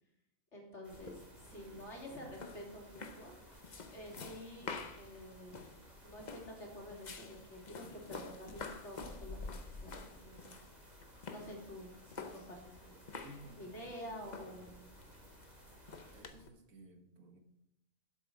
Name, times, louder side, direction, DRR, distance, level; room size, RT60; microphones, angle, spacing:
voice 1, 0.5-3.5 3.9-5.6 6.0-9.4 9.7-10.6 11.3-13.0 13.6-14.9, left 1 dB, 55° left, -1 dB, 3.3 m, -49 dB
sound 1, 0.8-16.2, right 1 dB, 30° right, 2.5 m, -60 dB
sound 2, 0.9-16.5, left 4 dB, 40° left, 0.9 m, -50 dB
voice 2, 1.5-2.3 13.2-14.6 16.1-17.4, equal, 80° right, 5 dB, 1.9 m, -57 dB
12.0 x 8.0 x 5.0 m, 0.82 s
omnidirectional pair, 1.4 m